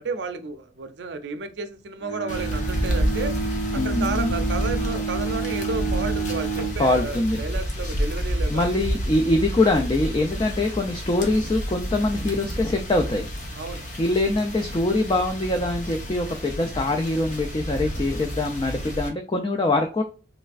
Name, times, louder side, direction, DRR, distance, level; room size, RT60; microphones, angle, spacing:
voice 1, 0.0-3.4 3.7-8.8 13.5-13.9, right 3 dB, 70° right, 9 dB, 0.5 m, -32 dB
Bowed string instrument, 2.0-6.9, right 4 dB, 90° left, 0.7 m, -29 dB
sound 1, 2.3-19.1, equal, 40° left, 0.8 m, -30 dB
voice 2, 3.8-4.3 6.8-7.4 8.5-13.3 14.0-20.0, left 2 dB, 25° left, 4 dB, 0.3 m, -23 dB
3.3 x 3.1 x 2.4 m, 0.35 s
head